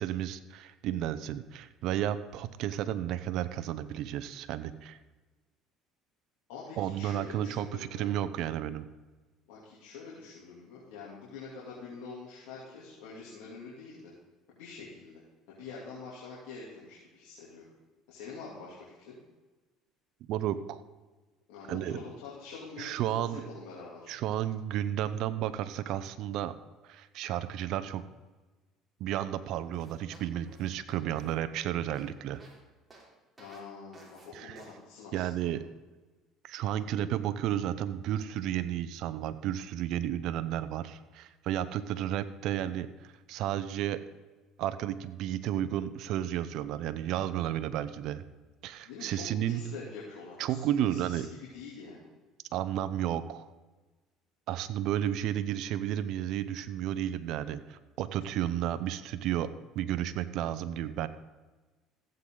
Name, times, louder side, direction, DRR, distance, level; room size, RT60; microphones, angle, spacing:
voice 1, 0.0-5.0 6.8-8.9 20.3-20.8 21.7-22.0 22.8-23.4 24.1-26.5 26.8-28.0 29.0-32.4 34.3-34.6 35.1-35.6 36.4-44.0 44.6-48.2 48.6-49.6 50.4-51.3 52.5-53.5 54.5-61.1, right 11 dB, 65° right, 13 dB, 0.6 m, -32 dB
voice 2, 6.5-8.1 9.5-14.1 14.5-15.2 15.5-17.6 18.1-19.2 21.5-24.1 33.4-35.5 48.8-51.2 51.5-52.0 54.9-55.3, left 4 dB, 85° left, -6 dB, 2.8 m, -46 dB
sound 1, 29.7-32.6 32.9-33.1 33.4-33.6 33.9-34.3 34.6-34.7, right 2 dB, 20° right, 3.3 m, -55 dB
15.0 x 8.0 x 3.9 m, 1.2 s
supercardioid pair, 95°, 0 cm